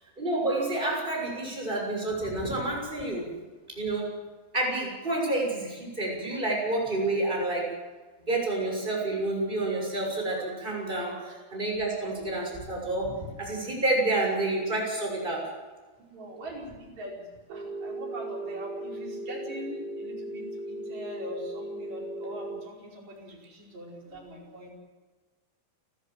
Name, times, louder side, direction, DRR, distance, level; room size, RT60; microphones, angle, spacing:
voice 1, 0.2-3.3 3.8-4.1 4.5-7.7 8.2-15.5, right 2 dB, 10° right, -1 dB, 6.3 m, -29 dB
voice 2, 16.0-17.2 17.5-24.7, equal, 35° right, -1 dB, 5.8 m, -42 dB
Telephone, 17.5-22.5, right 1 dB, 85° right, 6.0 m, -37 dB
29.0 x 15.5 x 7.7 m, 1.3 s
omnidirectional pair, 5.9 m